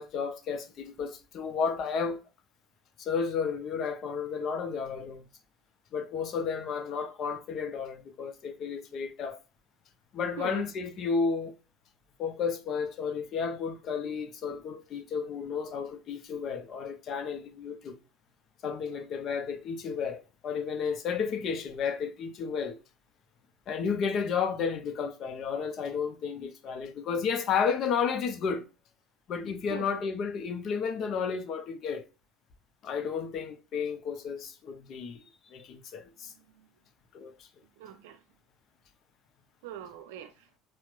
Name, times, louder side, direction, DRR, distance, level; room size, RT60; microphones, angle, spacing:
voice 1, 0.0-2.2 3.0-5.2 5.9-9.4 10.1-11.5 12.2-17.9 18.6-22.8 23.7-28.6 29.3-32.0 32.8-36.3 37.1-37.3, left 6 dB, 50° left, 0.6 m, -32 dB
voice 2, 10.4-10.7 29.7-30.0 36.2-36.7 37.8-38.2 39.6-40.5, right 11 dB, 70° right, 0.5 m, -42 dB
4.3 x 2.1 x 2.4 m
figure-of-eight pair, 65°, 0 cm